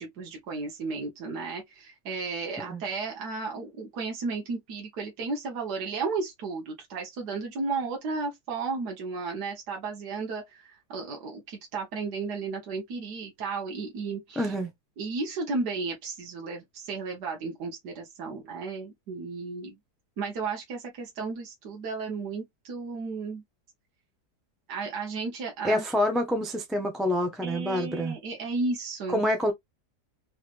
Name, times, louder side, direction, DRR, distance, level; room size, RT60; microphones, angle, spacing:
voice 1, 0.0-14.5 15.0-19.8 20.2-23.4 24.7-25.8 27.4-29.3, right 4 dB, 75° right, 1.7 m, -34 dB
voice 2, 14.4-14.7 25.6-28.1 29.1-29.5, left 1 dB, ahead, 0.5 m, -27 dB
4.0 x 3.1 x 2.4 m
omnidirectional pair, 1.8 m